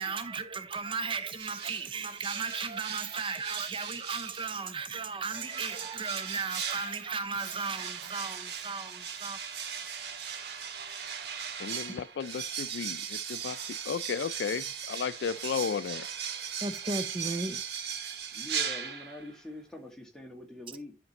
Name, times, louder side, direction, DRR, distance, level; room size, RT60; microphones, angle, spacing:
voice 1, 0.0-9.4 11.9-12.0 16.6-17.6, right 4 dB, 30° right, 0.6 m, -35 dB
sound 1, 1.4-4.6 5.3-19.4, right 7 dB, 65° right, 1.3 m, -38 dB
voice 2, 11.6-13.6 13.9-16.1, left 6 dB, 80° left, 0.4 m, -34 dB
voice 3, 18.3-21.0, left 1 dB, 5° left, 1.9 m, -44 dB
10.5 x 5.1 x 2.9 m
head